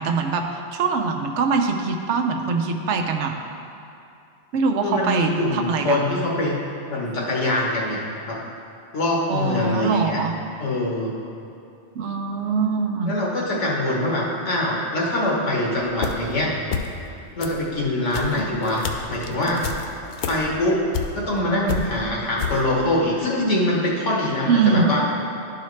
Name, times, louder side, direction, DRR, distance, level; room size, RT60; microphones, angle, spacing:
voice 1, 0.0-3.3 4.5-6.0 9.3-10.3 12.0-13.1 24.5-24.9, right 5 dB, 75° right, 4 dB, 0.9 m, -23 dB
voice 2, 4.8-6.6 6.9-8.4 8.9-10.2 10.6-11.1 13.0-16.6 17.4-19.6 20.3-20.8 21.1-25.0, left 1 dB, 80° left, -3 dB, 1.6 m, -23 dB
sound 1, 15.7-16.4 16.7-17.1 17.4-21.4 21.6-22.6, left 6 dB, 60° left, 0.5 m, -30 dB
11.5 x 4.8 x 3.2 m, 2.6 s
omnidirectional pair, 1.2 m